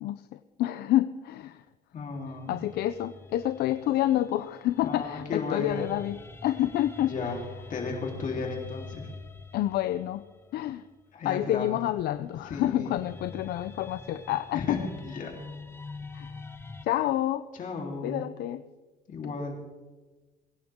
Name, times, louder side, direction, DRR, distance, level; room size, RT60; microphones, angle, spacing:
voice 1, 0.0-1.6 2.5-7.1 9.5-10.2 10.5-10.8 11.2-14.8 16.1-16.4 16.8-17.4 18.0-18.6, left 13 dB, 70° left, 12 dB, 0.6 m, -28 dB
voice 2, 1.9-2.6 4.8-5.9 7.0-7.4 7.7-9.1 11.1-11.8 12.4-13.0 14.5-14.8 15.0-15.3 17.6-18.2 19.1-19.5, left 4 dB, 50° left, 0 dB, 3.6 m, -34 dB
sound 1, 2.1-11.1 12.0-16.9, left 3 dB, 15° left, 0.9 m, -46 dB
23.0 x 10.5 x 3.7 m, 1.2 s
cardioid pair, 110°, 17 cm